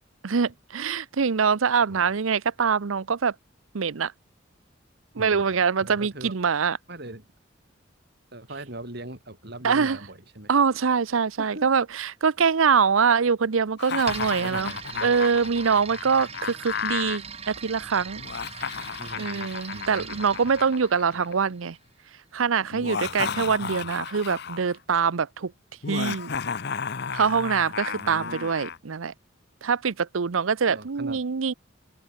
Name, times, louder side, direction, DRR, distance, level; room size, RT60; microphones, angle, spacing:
voice 1, 0.2-3.3 3.7-4.1 5.1-6.8 9.6-10.0 10.5-14.7 15.0-18.2 19.2-21.8 22.3-25.5 25.9-26.3 27.1-29.1 29.6-31.5, right 6 dB, 90° right, 0.7 m, -24 dB
voice 2, 5.2-5.5 5.8-6.3 6.9-7.2 8.3-10.5 11.4-11.7 14.4-15.1 19.0-20.5 21.1-21.2 22.9-23.8 27.9-28.5 30.7-31.2, right 1 dB, 55° right, 4.7 m, -41 dB
Laughter, 13.8-17.2 18.2-21.5 22.7-24.7 25.8-28.8, left 6 dB, 55° left, 0.8 m, -33 dB
sound 1, 14.0-21.8, right 6 dB, 30° right, 1.9 m, -41 dB
head